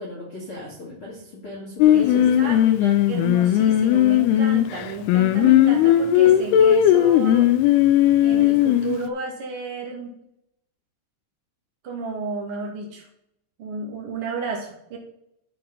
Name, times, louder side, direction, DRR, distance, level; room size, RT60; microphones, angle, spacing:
voice 1, 0.0-2.9, left 2 dB, 45° left, -4 dB, 1.9 m, -37 dB
Singing, 1.8-9.1, left 11 dB, 85° left, 2.3 m, -17 dB
voice 2, 1.9-2.6 3.1-7.5 8.2-10.1 11.8-13.1 13.6-15.0, right 4 dB, 45° right, 0 dB, 1.9 m, -32 dB
12.5 x 4.2 x 5.4 m, 0.78 s
omnidirectional pair, 5.3 m